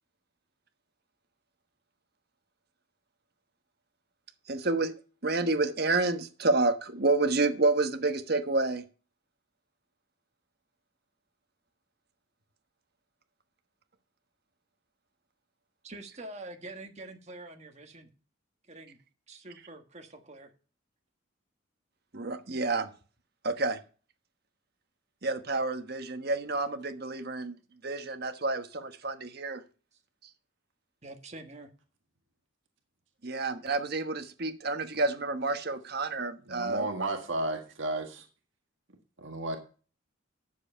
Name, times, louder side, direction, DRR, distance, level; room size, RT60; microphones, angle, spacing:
voice 1, 4.5-4.9 5.2-8.8 22.1-22.9 23.4-23.8 25.2-27.6 27.8-29.6 33.2-36.9, right 3 dB, 50° right, 8 dB, 1.3 m, -29 dB
voice 2, 15.8-18.1 18.7-19.0 19.3-20.5 31.0-31.7, right 2 dB, 35° right, 5 dB, 1.5 m, -45 dB
voice 3, 36.5-38.2 39.2-39.6, right 2 dB, 70° right, 3 dB, 1.7 m, -33 dB
9.8 x 7.3 x 5.5 m, 0.37 s
head